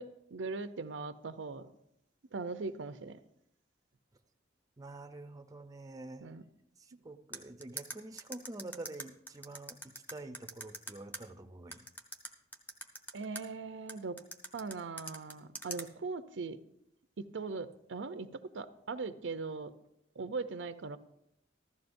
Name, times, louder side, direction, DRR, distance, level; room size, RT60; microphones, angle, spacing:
voice 1, 0.0-1.7 2.3-3.2 6.2-6.4 6.9-7.0 13.1-14.2 14.5-16.6 17.2-19.7 20.2-21.0, right 4 dB, 90° right, 11 dB, 0.6 m, -40 dB
voice 2, 4.8-6.3 6.8-11.8, right 2 dB, 20° right, 6 dB, 0.6 m, -47 dB
sound 1, 7.3-11.2 11.7-13.4 13.9-15.8, right 1 dB, 10° left, 0.9 m, -42 dB
15.0 x 13.0 x 2.6 m, 0.79 s
head